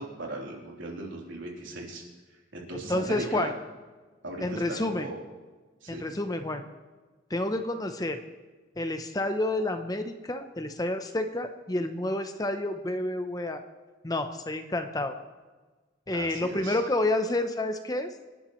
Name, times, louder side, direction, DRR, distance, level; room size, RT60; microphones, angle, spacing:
voice 1, 0.0-2.0 2.5-3.5 4.2-5.2 5.8-6.1 16.1-16.8, right 2 dB, 75° right, -2 dB, 3.6 m, -38 dB
voice 2, 2.9-3.5 4.4-5.1 5.9-6.6 7.3-8.2 8.8-13.6 14.0-15.1 16.1-18.1, left 1 dB, 20° left, 7 dB, 0.7 m, -29 dB
27.0 x 11.0 x 3.1 m, 1.3 s
head